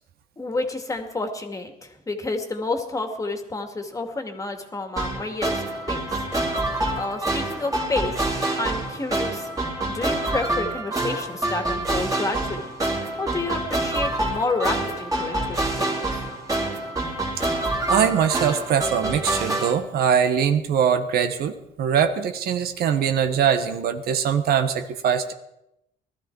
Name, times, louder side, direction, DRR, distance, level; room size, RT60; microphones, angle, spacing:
voice 1, 0.4-6.2 7.0-8.2 8.6-9.5 9.9-12.7 13.2-16.2, left 2 dB, 20° left, 5 dB, 2.1 m, -30 dB
sound 1, 5.0-19.7, right 2 dB, 20° right, 2.9 m, -27 dB
voice 2, 17.9-25.3, right 8 dB, 65° right, 8 dB, 1.4 m, -22 dB
19.0 x 13.0 x 4.7 m, 0.83 s
cardioid pair, 110°, 17 cm